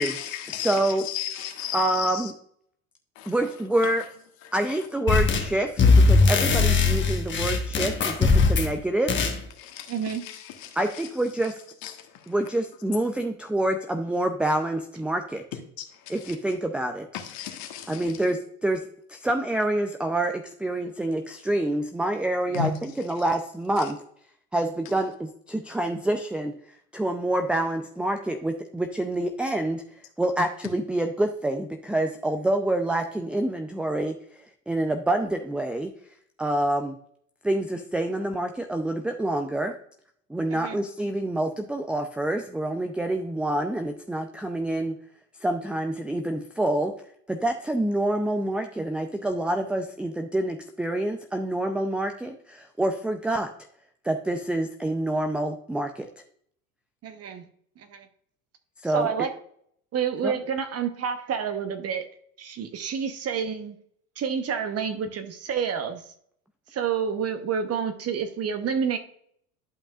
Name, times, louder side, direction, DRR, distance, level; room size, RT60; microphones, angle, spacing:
voice 1, 0.0-2.3 3.2-3.3 4.4-4.5 9.6-11.0 11.8-11.9 15.8-16.3 17.1-18.1 22.5-22.7, left 10 dB, 55° left, 1.5 m, -34 dB
voice 2, 0.6-1.1 1.7-2.3 3.3-4.1 4.5-5.7 6.1-9.2 10.8-11.6 12.3-15.4 16.1-17.1 17.9-18.8 19.1-24.0 24.5-26.6 26.9-29.8 30.2-34.2 34.7-35.9 36.4-37.0 37.4-39.7 40.3-45.0 45.4-46.9 47.3-53.5 54.0-56.1 58.8-59.1 60.2-60.4, right 1 dB, 5° right, 0.5 m, -27 dB
sound 1, 5.1-5.5 5.8-8.7 9.1-9.4, left 3 dB, 25° left, 1.3 m, -20 dB
voice 3, 9.9-10.2 18.0-18.1 40.5-40.8 57.0-57.4 57.8-58.1 58.9-59.3 59.9-62.0 62.4-63.8 64.2-66.0 66.7-69.0, right 7 dB, 35° right, 1.0 m, -29 dB
11.5 x 5.4 x 2.4 m
hypercardioid pair, 85°, 42 cm